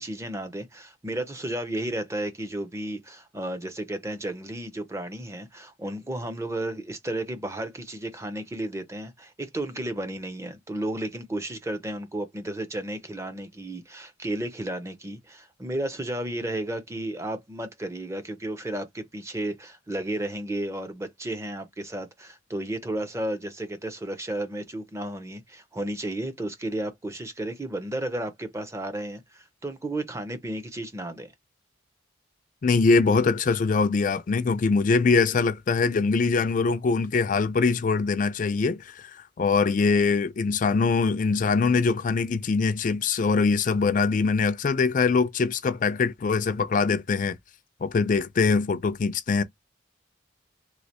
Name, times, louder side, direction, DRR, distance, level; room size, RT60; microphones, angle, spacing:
voice 1, 0.0-31.3, right 1 dB, 15° right, 0.6 m, -33 dB
voice 2, 32.6-47.4 47.8-49.4, left 4 dB, 45° left, 0.4 m, -23 dB
3.2 x 2.9 x 2.8 m
head